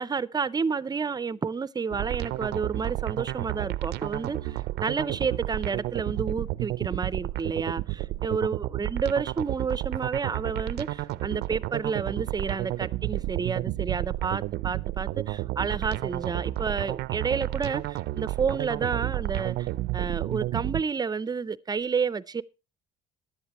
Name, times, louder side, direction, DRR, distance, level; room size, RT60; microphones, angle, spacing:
voice 1, 0.0-22.4, right 5 dB, 25° right, 0.5 m, -30 dB
sound 1, 1.9-20.8, right 16 dB, 80° right, 0.5 m, -31 dB
15.5 x 11.0 x 3.0 m
cardioid pair, 110°, 17 cm